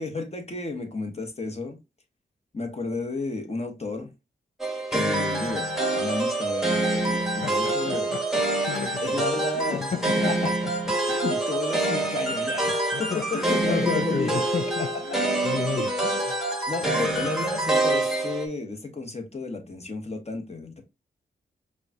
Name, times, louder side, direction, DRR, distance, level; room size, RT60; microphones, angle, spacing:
voice 1, 0.0-1.8 2.5-4.1 4.9-8.1 9.0-9.9 10.3-10.5 11.3-14.4 14.8-14.9 15.8-16.0 16.7-20.8, left 3 dB, 35° left, 1.2 m, -32 dB
sound 1, 4.6-18.5, right 2 dB, ahead, 1.2 m, -26 dB
voice 2, 7.2-9.3 9.5-10.5 11.0-11.4 12.9-15.9, left 6 dB, 50° left, 0.5 m, -32 dB
5.0 x 2.4 x 2.8 m
cardioid pair, 45°, 19 cm